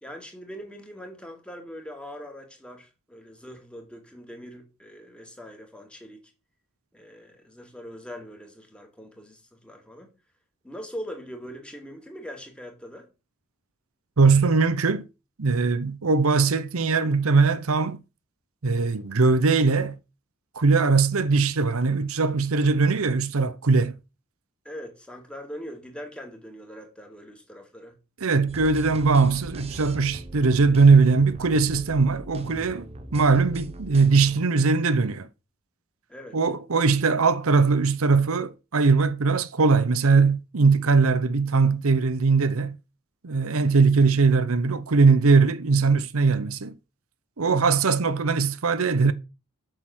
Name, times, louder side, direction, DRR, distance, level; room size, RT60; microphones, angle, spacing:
voice 1, 0.0-6.3 6.9-10.1 10.6-13.1 24.6-28.0 36.1-36.4, equal, 5° left, 2.3 m, -42 dB
voice 2, 14.2-15.1 15.4-18.0 18.6-20.0 20.6-24.0 28.2-32.9 33.1-35.3 36.3-42.8 43.2-46.7 47.4-49.1, right 4 dB, 75° right, 0.8 m, -20 dB
sound 1, 28.5-34.4, right 1 dB, 30° right, 1.1 m, -40 dB
7.8 x 6.7 x 6.1 m
head